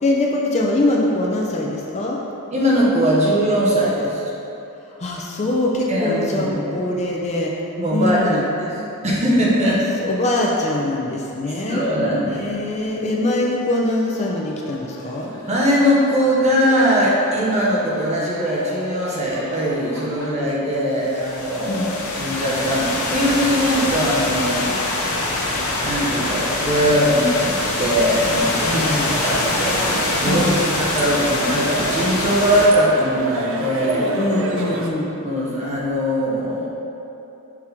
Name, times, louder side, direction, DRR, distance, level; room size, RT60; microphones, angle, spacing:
voice 1, 0.0-2.2 5.0-7.5 7.9-8.4 9.6-11.8 12.3-15.3 17.5-17.6 21.7-21.9 28.7-29.1 30.2-30.8 34.2-35.1, left 1 dB, 30° left, -2 dB, 0.5 m, -23 dB
voice 2, 2.5-4.2 5.9-6.5 7.8-8.8 9.0-9.8 11.5-12.4 15.5-24.7 25.8-34.0 35.1-36.7, equal, 30° right, -6 dB, 1.1 m, -20 dB
sound 1, 13.3-20.3, left 1 dB, 65° left, 1.4 m, -40 dB
sound 2, 21.0-32.7, left 2 dB, 85° left, 0.9 m, -24 dB
sound 3, 28.5-34.9, right 2 dB, 65° right, 0.5 m, -29 dB
5.9 x 3.7 x 4.4 m, 2.9 s
head